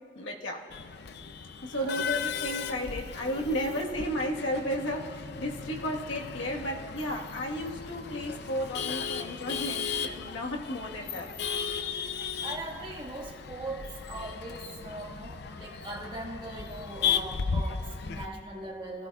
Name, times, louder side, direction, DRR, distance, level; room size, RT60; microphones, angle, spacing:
voice 1, 0.1-0.7 1.6-11.3, equal, 90° left, 0 dB, 1.5 m, -33 dB
Male speech man speaking / Laughter / Chatter, 0.7-18.3, left 6 dB, 60° left, 0.5 m, -36 dB
voice 2, 12.4-19.1, right 2 dB, 25° right, -1 dB, 1.6 m, -40 dB
25.0 x 16.0 x 2.4 m, 2.9 s
head